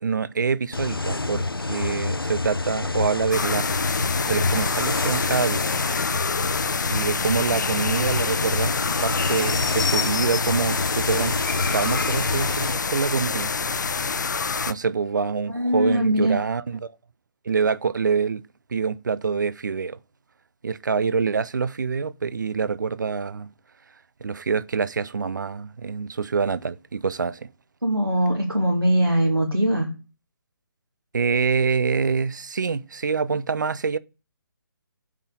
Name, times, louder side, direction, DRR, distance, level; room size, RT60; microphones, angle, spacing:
voice 1, 0.0-3.7 4.2-5.6 6.9-8.7 9.0-11.4 11.7-13.5 14.7-16.9 17.4-18.4 18.7-20.0 20.6-23.5 24.2-27.5 31.1-34.0, right 5 dB, 55° right, 0.6 m, -25 dB
sound 1, 0.7-12.7, left 3 dB, 90° left, 0.6 m, -28 dB
sound 2, 3.3-14.7, left 5 dB, 55° left, 0.8 m, -26 dB
voice 2, 15.5-16.4 27.8-29.9, right 1 dB, 90° right, 2.5 m, -21 dB
7.4 x 5.6 x 7.0 m
figure-of-eight pair, 140°, 12 cm